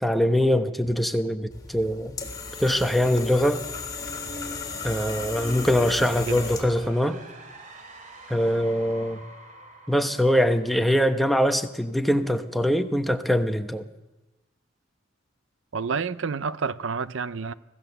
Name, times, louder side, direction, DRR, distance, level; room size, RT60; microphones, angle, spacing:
voice 1, 0.0-2.2 2.6-3.6 4.8-7.2 8.3-9.2 9.9-13.8, equal, ahead, 1.0 m, -23 dB
sound 1, 1.5-6.9, left 4 dB, 20° left, 3.3 m, -35 dB
sound 2, 4.6-11.5, right 2 dB, 40° right, 2.9 m, -46 dB
voice 2, 6.0-6.4 15.7-17.5, right 5 dB, 70° right, 0.6 m, -29 dB
25.0 x 16.0 x 6.8 m
head